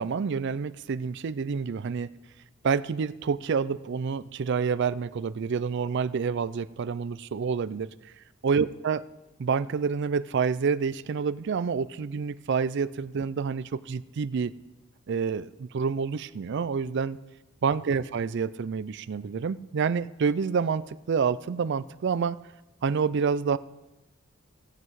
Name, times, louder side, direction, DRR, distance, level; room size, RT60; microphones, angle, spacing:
voice 1, 0.0-2.1 2.6-7.9 8.4-9.0 9.4-14.5 15.1-17.2 17.6-22.4 22.8-23.6, right 5 dB, 60° right, 16 dB, 0.4 m, -28 dB
15.5 x 7.7 x 4.7 m, 1.0 s
head